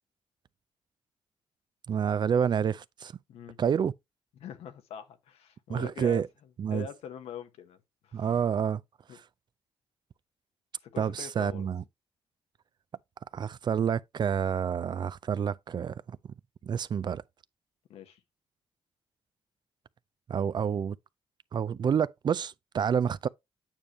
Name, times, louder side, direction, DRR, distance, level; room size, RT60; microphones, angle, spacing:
voice 1, 1.9-3.1 3.6-3.9 5.7-6.3 6.6-6.9 8.1-8.8 11.0-11.8 13.3-16.2 16.6-17.2 20.3-21.0 21.5-23.3, right 7 dB, 45° right, 0.4 m, -28 dB
voice 2, 4.4-6.2 6.7-7.8 8.0-8.3 9.1-9.2 10.8-11.7 17.9-18.2, left 8 dB, 85° left, 1.0 m, -43 dB
9.0 x 5.0 x 2.9 m
cardioid pair, 80°, 10 cm